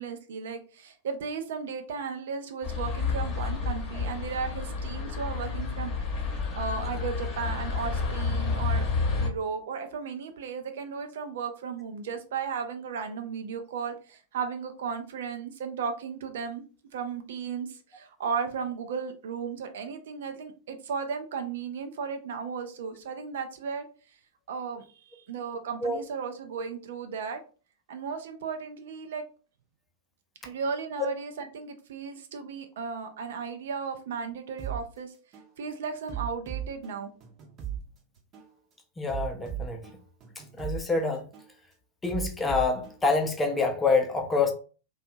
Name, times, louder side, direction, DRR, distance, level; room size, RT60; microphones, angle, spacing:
voice 1, 0.0-5.9 6.6-8.9 9.2-16.6 16.9-23.8 24.5-27.4 27.9-29.2 30.4-35.1 35.6-37.1, right 6 dB, 60° right, 0.4 m, -35 dB
sound 1, 2.6-9.3, left 4 dB, 30° left, 0.9 m, -30 dB
sound 2, 34.6-34.8 35.3-35.5 36.1-37.8 38.3-38.5 39.1-40.8 41.3-41.5 42.1-43.6, right 10 dB, 35° right, 0.7 m, -37 dB
voice 2, 39.0-39.8 40.6-41.3 42.0-44.5, left 4 dB, 15° left, 0.6 m, -26 dB
2.6 x 2.3 x 2.5 m
figure-of-eight pair, 95°, 0 cm